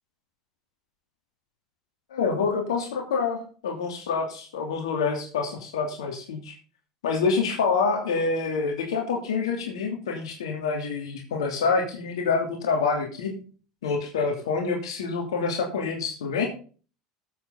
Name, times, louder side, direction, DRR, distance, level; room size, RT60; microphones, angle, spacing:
voice 1, 2.1-6.5 7.0-13.3 13.8-16.5, left 5 dB, 85° left, 2 dB, 2.9 m, -27 dB
14.5 x 8.0 x 3.9 m, 0.39 s
hypercardioid pair, 85°, 3 cm